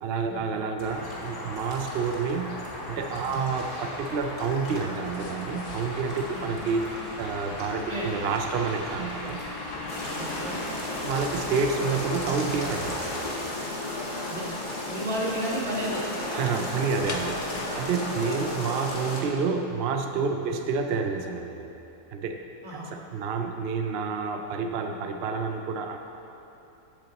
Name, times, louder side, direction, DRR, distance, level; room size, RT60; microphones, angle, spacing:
voice 1, 0.0-2.6 2.9-9.4 11.0-13.4 16.3-21.7 22.1-22.5 22.9-26.0, right 5 dB, 65° right, 5 dB, 0.6 m, -29 dB
sound 1, 0.8-13.3, left 1 dB, 55° left, 2.3 m, -38 dB
sound 2, 5.0-18.9, left 3 dB, 85° left, 1.4 m, -43 dB
sound 3, 9.9-19.2, left 1 dB, 30° left, 1.7 m, -34 dB
voice 2, 10.1-10.6 14.3-14.4 14.9-16.0 18.0-18.2 22.6-22.9, right 1 dB, 45° right, -4 dB, 1.9 m, -32 dB
15.5 x 6.7 x 4.1 m, 2.9 s
omnidirectional pair, 1.6 m